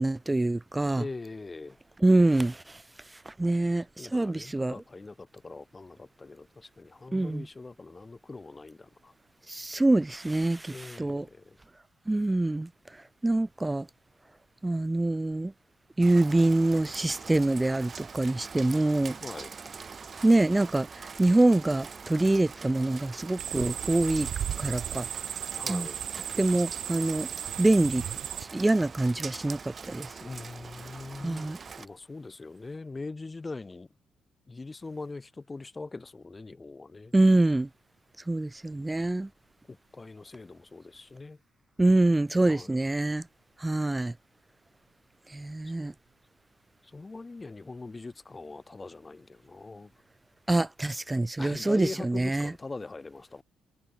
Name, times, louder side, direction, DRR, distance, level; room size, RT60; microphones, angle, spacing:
voice 1, 0.0-1.0 2.0-2.6 3.3-4.7 7.1-7.5 9.5-11.2 12.1-12.7 13.2-13.9 14.6-15.5 16.0-19.2 20.2-20.9 21.2-24.3 24.6-25.1 25.7-25.9 26.4-27.3 27.6-28.0 28.5-29.6 29.9-30.1 31.2-31.6 37.1-37.7 38.3-39.3 41.8-43.2 43.6-44.1 45.3-45.9 50.5-52.5, right 2 dB, 10° right, 0.4 m, -25 dB
voice 2, 1.0-1.8 4.0-9.1 10.7-11.6 19.2-19.5 25.6-26.0 30.2-31.5 31.8-33.9 34.5-37.1 39.7-41.4 42.4-42.8 45.7-45.8 46.8-49.9 51.4-53.4, left 3 dB, 20° left, 2.4 m, -42 dB
Rain, 16.0-31.9, right 5 dB, 30° right, 2.8 m, -43 dB
sound 1, 23.4-28.5, right 10 dB, 60° right, 1.5 m, -35 dB
cardioid pair, 145°, 0 cm